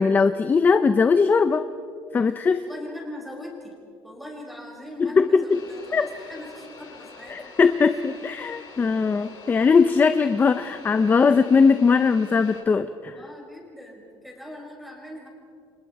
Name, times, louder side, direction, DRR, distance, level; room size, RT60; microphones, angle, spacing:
voice 1, 0.0-1.7 2.1-2.6 5.0-5.6 5.9-6.1 7.3-13.2, left 5 dB, 20° left, 10 dB, 0.6 m, -20 dB
voice 2, 2.5-3.7 4.0-7.4 7.9-8.0 13.2-15.3, left 1 dB, ahead, -1 dB, 5.3 m, -41 dB
sound 1, 5.5-12.6, left 4 dB, 50° left, 3.9 m, -45 dB
30.0 x 25.5 x 4.7 m, 2.3 s
cardioid pair, 165°, 9 cm